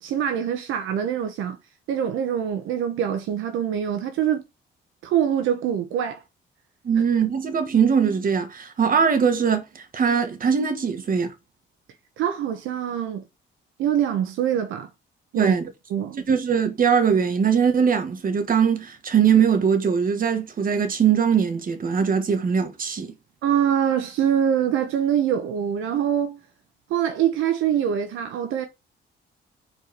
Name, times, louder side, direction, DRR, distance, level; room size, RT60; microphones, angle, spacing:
voice 1, 0.0-1.6 1.9-4.4 5.0-6.2 12.2-13.2 13.8-14.9 15.3-15.5 15.9-16.2 23.4-26.4 26.9-28.7, right 9 dB, 90° right, 1.2 m, -24 dB
voice 2, 6.8-11.3 15.4-15.7 16.3-23.1, right 7 dB, 45° right, 1.7 m, -21 dB
4.8 x 4.5 x 5.2 m
cardioid pair, 90°, 20 cm